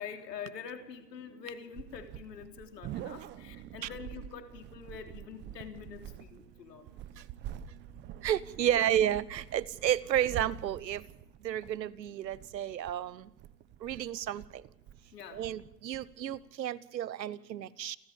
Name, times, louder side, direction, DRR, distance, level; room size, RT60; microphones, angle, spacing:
voice 1, 0.0-6.9 8.8-8.9 15.1-15.5, left 7 dB, 75° left, 5 dB, 3.6 m, -45 dB
sound 1, 1.7-16.5, right 10 dB, 20° right, 1.0 m, -46 dB
voice 2, 8.2-11.0 11.4-13.3 13.8-14.4 15.3-18.0, right 11 dB, 80° right, 19 dB, 1.2 m, -31 dB
29.0 x 13.5 x 7.1 m, 0.82 s
hypercardioid pair, 135°, 49 cm